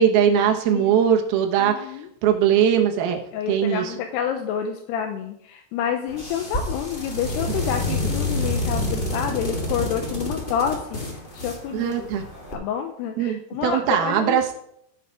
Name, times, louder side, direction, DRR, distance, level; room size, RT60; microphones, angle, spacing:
voice 1, 0.0-2.0 2.2-3.2 3.5-4.0 11.7-12.2 13.2-14.5, right 8 dB, 70° right, 3 dB, 3.0 m, -20 dB
voice 2, 1.6-2.1 3.3-11.0 11.3-12.2 12.5-14.4, left 8 dB, 80° left, 5 dB, 2.8 m, -28 dB
sound 1, 6.1-12.5, left 1 dB, 40° left, 0.7 m, -28 dB
14.5 x 5.7 x 4.8 m, 0.71 s
omnidirectional pair, 4.8 m